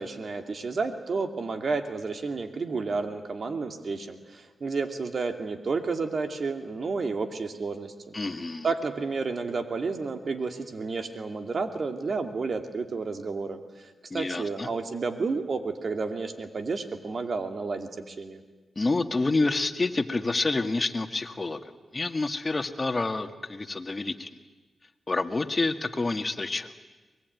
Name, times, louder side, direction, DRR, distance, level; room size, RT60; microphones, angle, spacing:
voice 1, 0.0-8.1 8.6-18.4, right 4 dB, 60° right, 7 dB, 2.4 m, -31 dB
voice 2, 8.1-8.7 14.1-14.7 18.8-24.3 25.1-26.7, left 3 dB, 35° left, 7 dB, 1.9 m, -28 dB
24.0 x 20.5 x 9.5 m, 1.2 s
cardioid pair, 50°, 0 cm